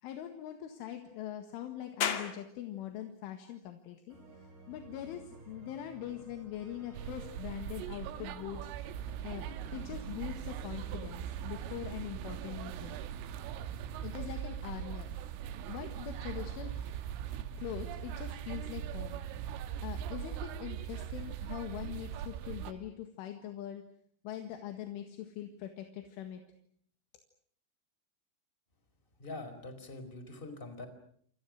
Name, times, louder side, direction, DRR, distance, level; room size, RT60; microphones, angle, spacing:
voice 1, 0.0-8.7 9.2-13.0 14.0-15.1 15.7-19.2 19.8-23.8 24.2-26.4, left 11 dB, 80° left, 6 dB, 4.3 m, -43 dB
sound 1, 2.0-15.1, left 7 dB, 50° left, 3.4 m, -46 dB
sound 2, 4.1-11.7, right 3 dB, 60° right, 9.2 m, -57 dB
sound 3, 6.9-22.7, right 9 dB, 85° right, 3.9 m, -40 dB
voice 2, 29.2-30.9, left 2 dB, 10° left, 8 dB, 4.2 m, -44 dB
29.0 x 28.5 x 6.5 m, 0.63 s
omnidirectional pair, 5.6 m